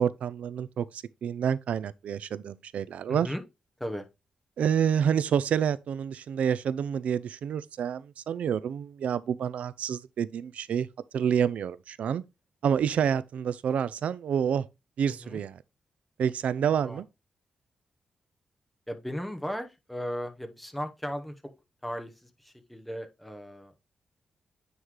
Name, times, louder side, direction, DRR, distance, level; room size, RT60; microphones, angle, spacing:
voice 1, 0.0-3.3 4.6-10.9 11.1-12.2 12.6-14.6 15.0-15.6 16.2-17.0, right 8 dB, 75° right, 0.4 m, -28 dB
voice 2, 3.1-3.4 3.8-4.1 15.1-15.4 16.8-17.0 18.9-21.3 21.8-23.8, equal, 5° left, 0.9 m, -36 dB
9.4 x 3.2 x 3.7 m
cardioid pair, 105°, 2 cm